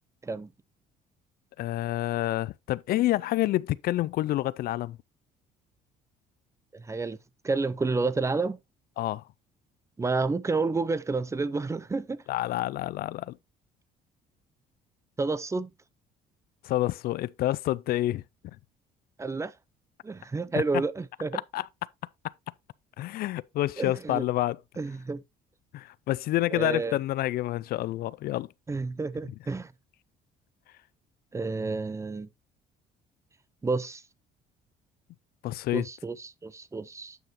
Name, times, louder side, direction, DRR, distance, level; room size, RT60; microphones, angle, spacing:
voice 1, 1.6-5.0 9.0-9.2 12.3-13.4 16.6-18.2 21.3-21.7 23.0-24.6 25.7-28.5 35.4-35.9, left 15 dB, 65° left, 0.4 m, -28 dB
voice 2, 6.7-7.2 7.4-8.6 10.0-12.2 15.2-15.7 19.2-19.5 20.0-21.4 23.8-24.2 24.8-25.2 26.5-27.0 28.7-29.7 31.3-32.3 33.6-34.0 35.7-37.2, right 3 dB, 15° right, 0.5 m, -30 dB
9.3 x 5.7 x 3.0 m
cardioid pair, 110°, 17 cm